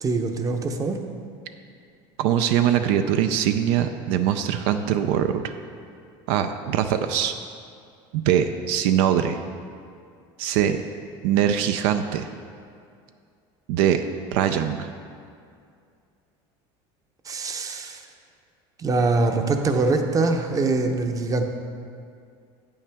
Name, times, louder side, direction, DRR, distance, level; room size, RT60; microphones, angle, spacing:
voice 1, 0.0-1.0 17.2-18.1 18.8-21.4, right 3 dB, 25° right, 5 dB, 0.7 m, -23 dB
voice 2, 2.2-5.5 6.3-7.3 8.1-9.4 10.4-10.8 11.2-12.3 13.7-14.0 14.3-14.9, right 9 dB, 75° right, 8 dB, 0.4 m, -22 dB
8.6 x 8.4 x 3.5 m, 2.4 s
supercardioid pair, 115°, 13 cm